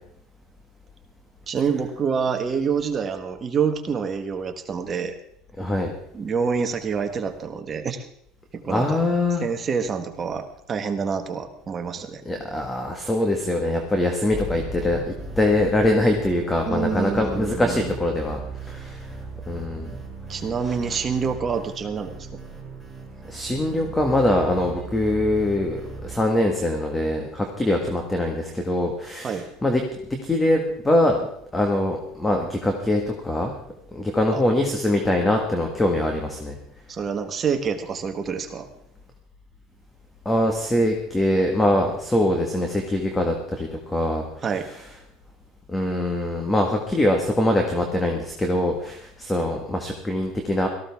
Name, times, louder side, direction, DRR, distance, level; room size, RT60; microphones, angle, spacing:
voice 1, 1.5-5.1 6.1-8.1 8.5-9.0 9.4-12.2 16.7-17.9 20.3-22.3 29.2-29.5 34.3-34.4 36.9-38.7 44.4-44.7, right 6 dB, 30° right, 6 dB, 1.4 m, -27 dB
voice 2, 5.6-5.9 8.7-9.4 12.2-19.1 19.5-19.9 23.2-29.8 30.1-31.3 31.5-33.5 33.9-36.6 40.2-44.2 45.7-50.7, left 1 dB, 10° left, 3 dB, 1.7 m, -23 dB
sound 1, 14.3-26.2, right 3 dB, 5° right, 2.8 m, -37 dB
17.5 x 14.5 x 3.6 m, 0.72 s
supercardioid pair, 130°, 0 cm